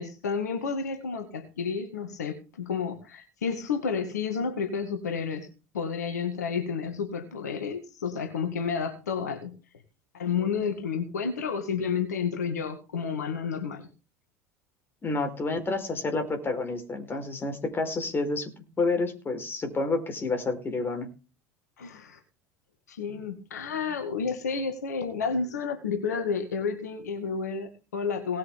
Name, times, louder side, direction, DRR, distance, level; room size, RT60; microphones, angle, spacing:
voice 1, 0.0-5.5 5.7-9.5 10.1-13.9 21.8-22.2 22.9-28.4, left 6 dB, 75° left, 6 dB, 2.1 m, -31 dB
voice 2, 15.0-18.5 18.8-21.1, left 3 dB, 25° left, 6 dB, 4.4 m, -29 dB
19.0 x 7.9 x 3.8 m, 0.32 s
figure-of-eight pair, 70°, 9 cm